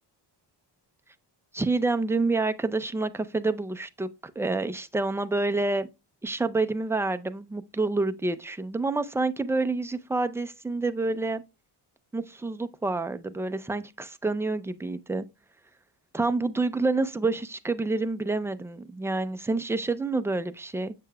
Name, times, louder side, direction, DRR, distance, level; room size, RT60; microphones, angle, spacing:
voice 1, 1.5-4.1 4.4-5.9 6.2-11.4 12.1-15.3 16.1-20.9, right 3 dB, 5° right, 0.4 m, -28 dB
7.4 x 6.6 x 2.2 m
wide cardioid pair, 130°, 42 cm